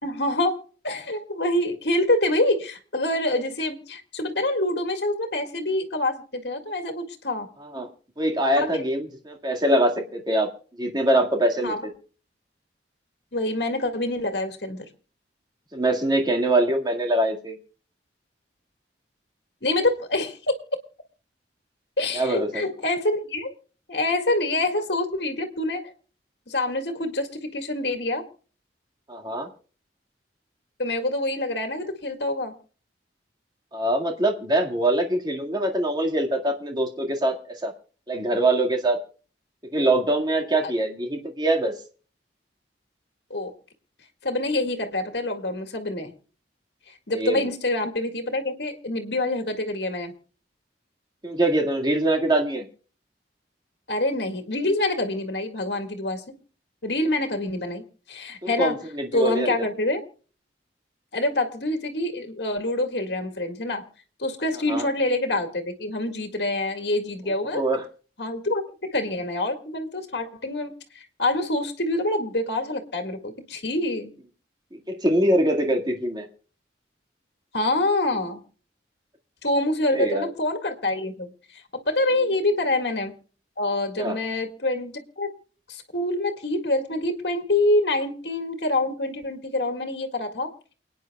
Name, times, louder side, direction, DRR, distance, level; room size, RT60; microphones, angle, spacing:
voice 1, 0.0-7.5 8.5-8.7 11.6-11.8 13.3-14.9 19.6-20.6 22.0-23.5 23.9-25.9 26.5-28.2 30.8-32.5 43.3-43.5 44.2-46.1 47.1-50.1 53.9-56.2 56.8-57.8 58.1-58.8 59.1-60.0 61.1-63.8 64.2-67.6 68.2-74.1 77.5-78.4 79.4-81.3 81.9-83.1 83.6-85.3 85.7-90.5, left 2 dB, 65° left, 5 dB, 2.0 m, -26 dB
voice 2, 8.2-10.5 10.8-11.7 15.7-17.5 22.1-22.6 29.1-29.5 33.7-37.4 37.6-37.7 38.1-39.0 39.7-41.7 47.1-47.4 51.2-52.7 58.4-59.5 64.7-64.9 67.2-67.8 74.9-76.3 79.9-80.3 84.0-84.2, right 1 dB, 25° right, 1 dB, 2.0 m, -23 dB
28.5 x 9.6 x 2.3 m, 0.39 s
head